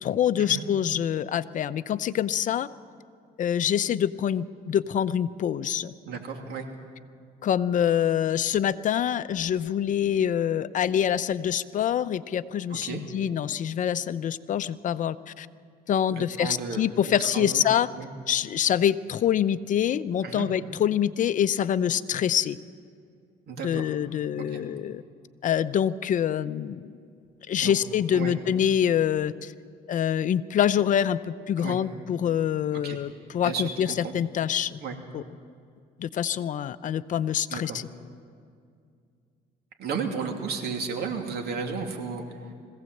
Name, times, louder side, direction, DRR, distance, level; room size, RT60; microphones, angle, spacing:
voice 1, 0.0-2.7 3.4-5.9 7.4-15.5 15.9-17.9 18.3-22.6 23.6-25.0 25.4-26.9 27.5-29.5 29.9-33.9 34.1-34.8 35.1-35.2 36.0-37.9, left 9 dB, 50° left, 13 dB, 0.7 m, -25 dB
voice 2, 6.1-6.7 12.7-13.0 16.1-17.6 17.9-18.1 20.2-20.5 23.5-23.9 24.4-24.6 27.6-27.8 28.1-28.3 31.6-31.8 32.7-33.0 33.4-34.1 34.8-35.0 37.5-37.8 39.8-42.4, right 5 dB, 70° right, 3 dB, 2.8 m, -33 dB
21.0 x 16.5 x 7.9 m, 2.3 s
cardioid pair, 110°, 17 cm